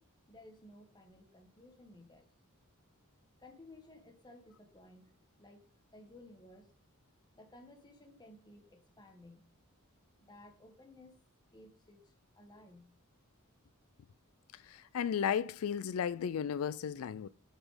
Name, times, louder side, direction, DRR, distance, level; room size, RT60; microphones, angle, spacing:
voice 1, 0.0-2.3 3.4-6.7 7.3-9.5 10.2-11.2 11.5-12.9, left 1 dB, 20° left, 1.6 m, -57 dB
voice 2, 14.5-17.3, left 8 dB, 70° left, 0.4 m, -34 dB
8.8 x 5.1 x 5.0 m
head